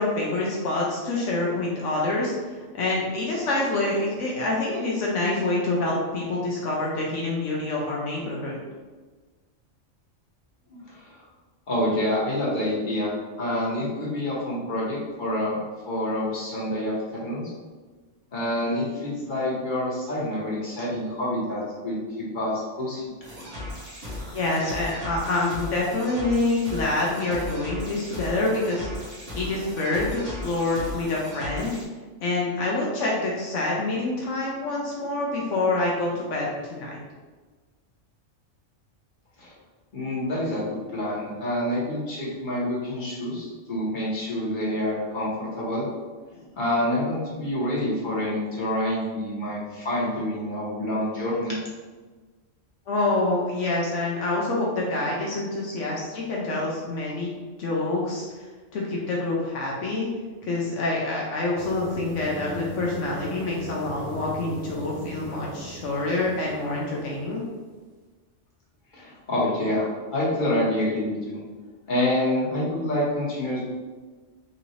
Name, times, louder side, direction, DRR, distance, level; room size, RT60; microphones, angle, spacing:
voice 1, 0.0-8.6 24.3-28.9 29.3-31.7 32.2-37.0 52.9-58.3 58.7-60.1 60.5-67.4, left 2 dB, 80° left, -3 dB, 1.1 m, -26 dB
voice 2, 10.9-11.2 11.7-15.6 15.9-17.4 18.3-23.0 39.4-39.5 39.9-45.9 46.3-51.5 68.9-71.4 71.9-73.7, left 1 dB, 40° left, -6 dB, 1.5 m, -27 dB
sound 1, 23.2-31.8, left 1 dB, 65° right, 1.7 m, -37 dB
sound 2, 61.6-67.5, right 1 dB, 50° right, 0.9 m, -39 dB
5.6 x 2.7 x 3.1 m, 1.4 s
omnidirectional pair, 1.3 m